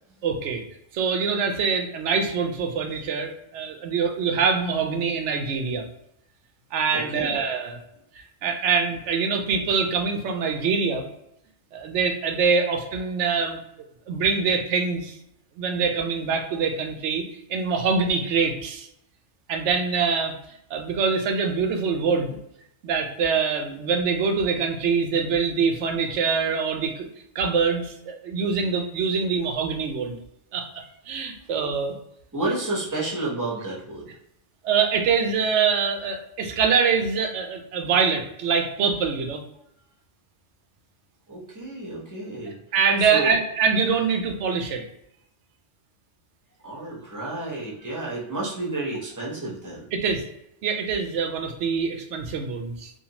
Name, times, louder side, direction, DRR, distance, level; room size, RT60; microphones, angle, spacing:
voice 1, 0.2-0.6 0.9-5.9 6.7-7.8 8.4-11.0 11.7-13.6 14.1-15.1 15.6-17.2 17.5-18.9 19.5-20.3 20.7-22.4 22.8-27.1 27.4-30.2 30.5-31.9 34.6-39.4 42.7-44.8 49.9-50.2 50.6-52.9, right 5 dB, 75° right, 4 dB, 0.9 m, -24 dB
voice 2, 6.9-7.4 32.3-34.1 41.3-42.6 43.0-43.4 46.6-49.9, right 2 dB, 20° right, -5 dB, 0.8 m, -31 dB
2.6 x 2.4 x 2.8 m, 0.77 s
omnidirectional pair, 1.2 m